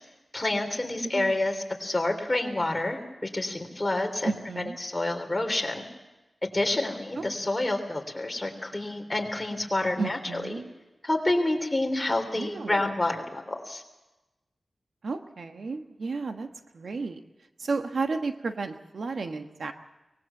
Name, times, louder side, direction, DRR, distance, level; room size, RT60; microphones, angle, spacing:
voice 1, 0.3-5.8 6.5-10.6 11.0-13.8, left 2 dB, 20° left, 4 dB, 3.5 m, -28 dB
voice 2, 1.0-1.4 4.2-4.8 7.2-7.3 7.6-7.7 10.0-10.7 12.4-12.8 15.0-16.5 16.7-17.2 17.6-19.7, right 4 dB, 70° right, 6 dB, 1.3 m, -32 dB
23.5 x 20.0 x 7.3 m, 1.0 s
wide cardioid pair, 100°, 0 cm